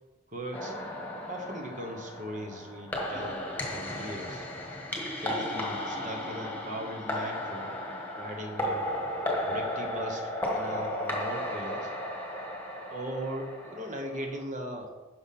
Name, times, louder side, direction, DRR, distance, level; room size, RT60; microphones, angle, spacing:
voice 1, 0.3-1.0 1.3-4.5 5.2-7.8 8.2-8.9 9.4-11.9 12.9-14.9, equal, 35° right, 4 dB, 1.2 m, -39 dB
sound 1, 0.5-14.4, left 1 dB, 10° left, 1.5 m, -35 dB
11.0 x 6.2 x 4.2 m, 1.2 s
head